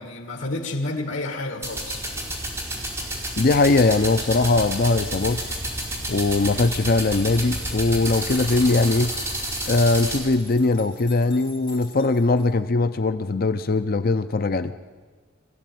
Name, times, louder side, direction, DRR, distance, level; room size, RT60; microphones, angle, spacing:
voice 1, 0.0-2.1, left 2 dB, 80° left, 2 dB, 2.2 m, -30 dB
sound 1, 1.6-10.2, right 1 dB, 15° right, 5.2 m, -30 dB
voice 2, 3.4-5.4 6.1-9.1 9.7-14.7, left 3 dB, 50° left, 11 dB, 0.6 m, -20 dB
sound 2, 4.8-12.5, left 5 dB, 25° left, 6.3 m, -47 dB
24.0 x 15.5 x 9.3 m, 1.5 s
head